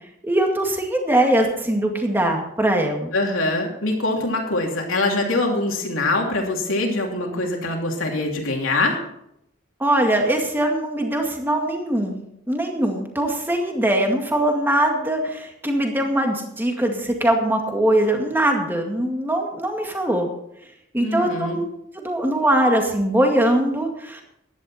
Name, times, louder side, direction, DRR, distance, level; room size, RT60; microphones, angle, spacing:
voice 1, 0.2-3.1 9.8-20.3 20.9-21.6 21.9-24.2, right 1 dB, 10° right, 2 dB, 2.0 m, -21 dB
voice 2, 3.1-9.0 21.0-21.6, left 2 dB, 75° left, 1 dB, 3.1 m, -23 dB
15.0 x 11.5 x 4.3 m, 0.77 s
head